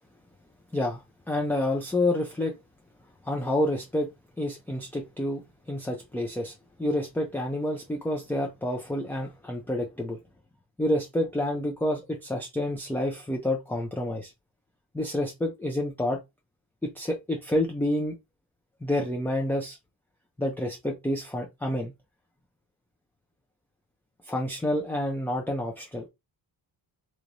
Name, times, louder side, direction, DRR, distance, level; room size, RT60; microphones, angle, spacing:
voice 1, 0.7-2.5 3.2-4.1 4.4-10.2 10.8-14.3 14.9-16.2 16.8-18.2 18.8-19.8 20.4-21.9 24.2-26.1, left 1 dB, 5° left, 0.5 m, -29 dB
3.2 x 3.0 x 2.6 m
cardioid pair, 120°, 46 cm